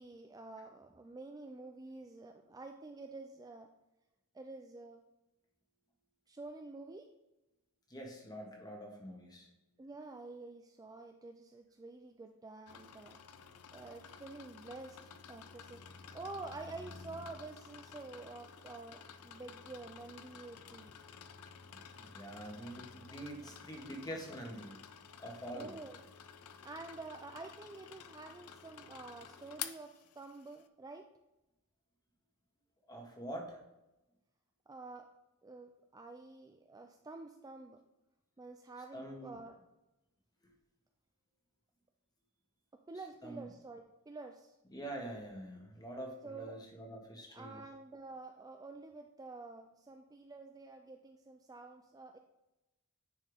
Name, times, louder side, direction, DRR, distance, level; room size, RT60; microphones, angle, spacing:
voice 1, 0.0-3.7 4.3-5.0 6.3-7.1 9.8-13.2 13.7-15.0 15.3-20.9 25.5-26.0 26.4-31.0 34.7-35.0 35.4-37.8 38.4-39.6 42.9-44.6 46.2-46.6 47.3-52.2, right 3 dB, 15° right, 4 dB, 0.4 m, -49 dB
voice 2, 7.9-9.5 21.7-24.8 25.2-25.7 32.9-33.6 38.9-39.4 43.2-43.4 44.7-47.6, right 1 dB, 20° left, 0 dB, 1.6 m, -45 dB
sound 1, 12.7-30.6, left 7 dB, 75° left, 0.5 m, -52 dB
9.9 x 4.3 x 3.6 m, 0.95 s
head